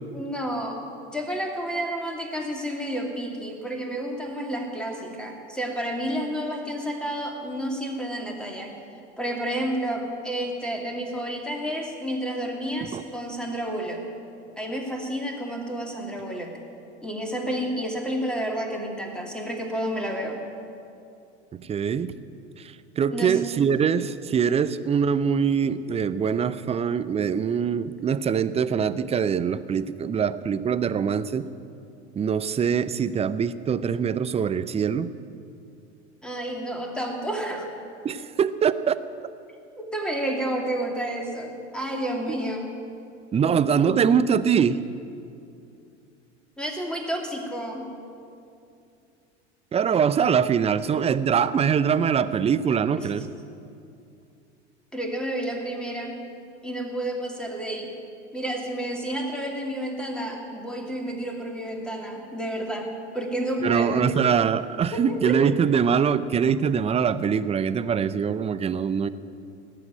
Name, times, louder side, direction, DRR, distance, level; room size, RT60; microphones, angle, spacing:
voice 1, 0.1-0.8 1.1-8.7 9.2-14.0 14.6-16.5 17.0-20.4 23.1-23.4 36.2-37.7 39.7-42.7 46.6-47.9 53.0-53.1 54.9-56.2 56.6-57.9 58.3-64.1 64.9-65.4, right 1 dB, 5° left, 1 dB, 2.6 m, -30 dB
voice 2, 21.6-22.1 22.6-31.5 32.2-35.1 38.0-39.0 43.3-44.8 49.7-53.3 63.6-69.1, right 7 dB, 20° right, 14 dB, 0.6 m, -23 dB
18.0 x 7.8 x 9.0 m, 2.6 s
figure-of-eight pair, 80°, 34 cm